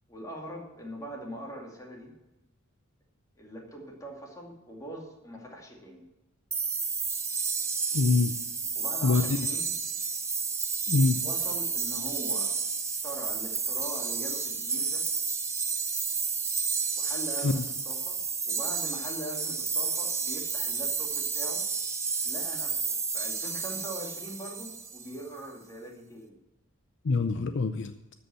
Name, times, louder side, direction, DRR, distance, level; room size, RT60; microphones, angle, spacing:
voice 1, 0.1-2.1 3.4-6.0 8.7-9.8 11.2-12.6 13.0-15.1 17.0-21.6 22.2-26.4, right 1 dB, 15° left, -1 dB, 2.4 m, -42 dB
sound 1, 6.5-25.2, right 5 dB, 15° right, 0.9 m, -31 dB
voice 2, 7.9-8.3 9.0-9.4 10.9-11.2 17.4-17.6 27.0-27.9, left 3 dB, 60° left, 9 dB, 0.6 m, -24 dB
13.0 x 5.5 x 7.5 m, 1.0 s
head